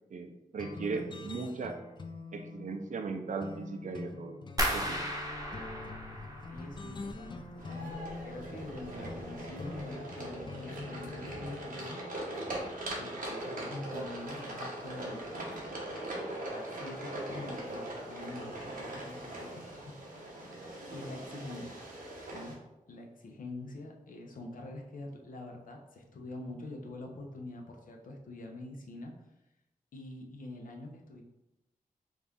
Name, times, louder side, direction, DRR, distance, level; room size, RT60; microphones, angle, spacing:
voice 1, 0.1-1.8 2.3-4.4 4.7-5.0, right 4 dB, 60° right, 6 dB, 0.5 m, -37 dB
sound 1, 0.6-11.9, left 3 dB, 35° left, 0.4 m, -45 dB
sound 2, 4.6-7.5 7.7-8.4 8.8-9.2 9.6-9.8, right 1 dB, 25° right, 0.8 m, -36 dB
voice 2, 6.5-12.0 12.9-15.2 15.9-20.0 20.9-21.7 22.3-22.6 22.9-29.1 29.9-31.2, left 2 dB, 75° left, 1 dB, 0.7 m, -45 dB
sound 3, 7.6-22.6, right 1 dB, 90° right, 0.9 m, -41 dB
4.1 x 2.4 x 3.5 m, 0.94 s
cardioid pair, 60°, 14 cm